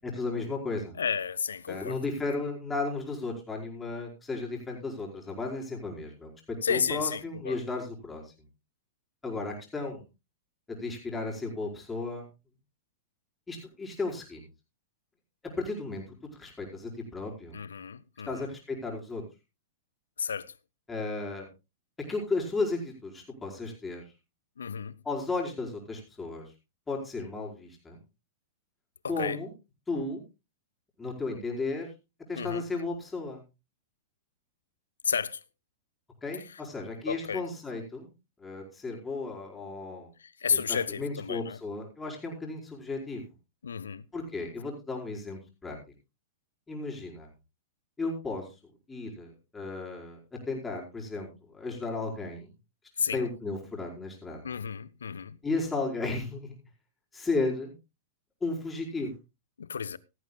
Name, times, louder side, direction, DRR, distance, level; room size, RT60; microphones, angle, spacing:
voice 1, 0.0-0.9 1.7-8.2 9.2-10.0 10.7-12.2 13.5-14.4 15.6-16.0 16.4-17.6 18.3-19.2 20.9-21.5 22.1-24.0 25.0-26.4 26.9-28.0 29.1-29.5 29.9-30.2 31.0-31.9 32.3-33.4 36.2-38.1 38.4-40.1 40.5-43.2 44.1-45.8 46.7-47.3 48.0-48.4 48.9-52.5 53.1-54.6 55.4-56.5 57.1-57.7 58.4-59.1, left 3 dB, 15° left, 4.9 m, -34 dB
voice 2, 1.0-2.0 6.6-7.6 17.5-18.5 20.2-20.5 24.6-25.0 29.0-29.4 32.3-32.7 35.0-35.4 37.1-37.4 40.2-41.6 43.6-44.1 53.0-53.3 54.4-55.4 59.6-60.0, left 6 dB, 75° left, 0.6 m, -32 dB
16.5 x 14.0 x 2.3 m
figure-of-eight pair, 100°, 0 cm